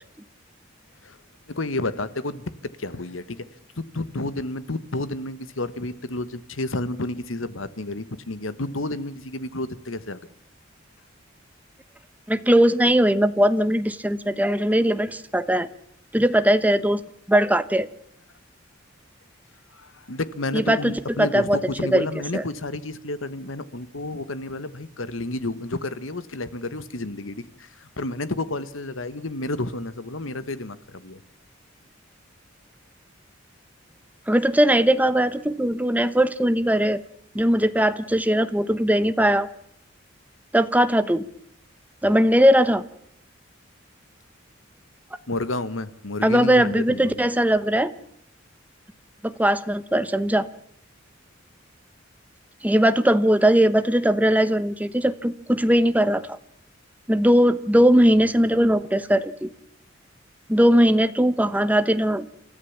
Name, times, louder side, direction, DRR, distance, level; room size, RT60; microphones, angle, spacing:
voice 1, 1.5-2.4 2.8-3.5 3.8-10.2 19.7-31.2 45.3-47.1, left 2 dB, 85° left, 14 dB, 1.4 m, -31 dB
voice 2, 12.3-15.7 16.1-17.0 17.3-17.9 20.5-22.1 22.3-22.4 34.3-37.0 37.3-39.5 40.5-41.2 42.0-42.8 46.2-47.9 49.2-50.5 52.6-56.4 57.1-59.5 60.5-62.3, equal, 10° right, 12 dB, 1.1 m, -19 dB
28.5 x 14.0 x 7.2 m, 0.71 s
head